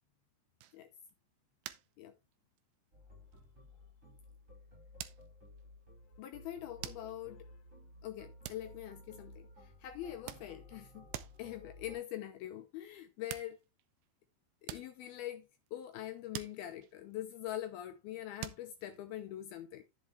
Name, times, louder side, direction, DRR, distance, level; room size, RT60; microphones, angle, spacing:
sound 1, 0.6-1.1 1.6-2.0 2.3-2.7 3.3-3.4 5.0-5.7 6.8-7.3 8.4-9.4 10.0-10.9 11.1-11.5 12.9-13.0 13.3-14.1 14.6-16.0 16.3-17.5 18.4-19.1, right 14 dB, 75° right, 2.6 m, -47 dB
sound 2, 2.9-12.0, left 1 dB, 15° right, 5.5 m, -56 dB
voice 1, 6.2-7.6 8.0-11.1 11.4-13.6 14.6-19.8, left 12 dB, 90° left, 2.2 m, -44 dB
10.5 x 7.2 x 3.2 m
omnidirectional pair, 5.5 m